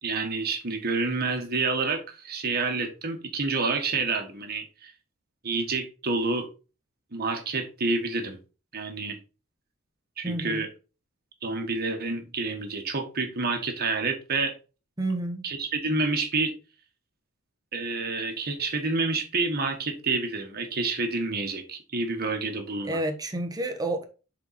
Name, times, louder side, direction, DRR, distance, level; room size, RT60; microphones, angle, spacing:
voice 1, 0.0-4.9 5.4-6.5 7.1-8.4 8.7-9.2 10.2-10.7 11.4-14.5 15.4-16.5 17.7-23.0, right 3 dB, 50° right, 1.5 m, -28 dB
voice 2, 10.2-10.7 15.0-15.5 22.8-24.0, right 1 dB, 20° right, 1.2 m, -30 dB
7.0 x 4.4 x 4.2 m
head